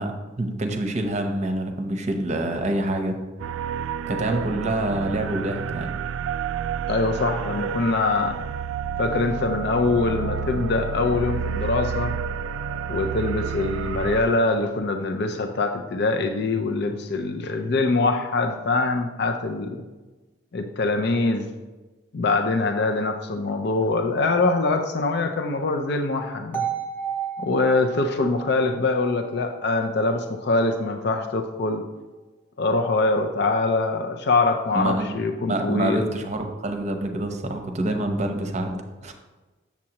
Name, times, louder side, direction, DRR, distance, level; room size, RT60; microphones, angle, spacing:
voice 1, 0.0-3.2 4.1-5.9 34.7-35.1 35.5-39.1, right 1 dB, 35° right, 5 dB, 0.7 m, -26 dB
sound 1, 3.4-14.2, right 7 dB, 80° right, 0.3 m, -30 dB
voice 2, 6.9-8.4 9.0-12.1 12.9-19.8 20.5-21.5 22.1-26.6 27.4-31.8 32.6-36.0, left 3 dB, 55° left, 5 dB, 0.5 m, -23 dB
sound 2, 26.5-30.5, right 7 dB, 10° left, 0.8 m, -33 dB
7.4 x 7.2 x 2.9 m, 1.2 s
head